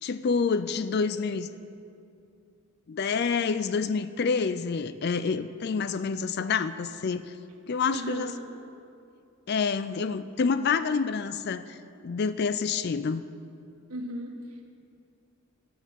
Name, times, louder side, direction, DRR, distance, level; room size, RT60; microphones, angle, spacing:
voice 1, 0.0-1.5 2.9-7.2 7.7-8.3 9.5-11.8 12.0-13.3, left 5 dB, 45° left, 13 dB, 0.4 m, -28 dB
voice 2, 7.9-8.5 13.9-14.6, equal, 90° right, 0 dB, 1.6 m, -36 dB
10.0 x 8.1 x 7.2 m, 2.5 s
head